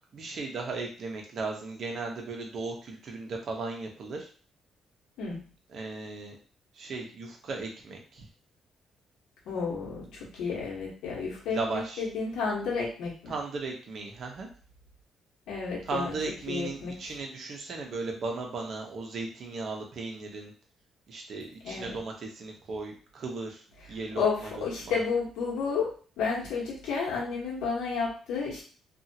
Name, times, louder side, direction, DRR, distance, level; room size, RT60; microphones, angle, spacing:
voice 1, 0.1-4.3 5.7-6.4 6.8-8.3 11.5-12.0 13.3-14.5 15.9-20.5 21.1-23.6 23.9-24.9, right 3 dB, 60° right, 1 dB, 0.8 m, -36 dB
voice 2, 9.4-13.3 15.5-16.1 16.5-17.0 21.6-22.0 24.2-25.9 26.2-28.6, left 5 dB, 85° left, -4 dB, 1.1 m, -31 dB
2.7 x 2.4 x 2.7 m, 0.40 s
cardioid pair, 90°, 0 cm